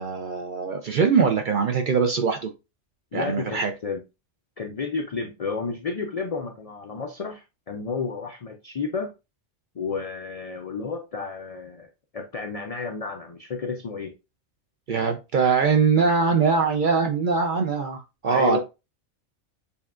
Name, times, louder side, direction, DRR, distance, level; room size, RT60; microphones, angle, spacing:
voice 1, 0.0-2.5 3.1-3.7 14.9-18.6, right 5 dB, 60° right, 5 dB, 0.5 m, -22 dB
voice 2, 3.1-4.0 4.6-9.1 9.8-11.9 12.1-14.1 18.3-18.6, left 5 dB, 65° left, 4 dB, 0.3 m, -31 dB
6.9 x 2.3 x 2.3 m, 0.27 s
omnidirectional pair, 1.3 m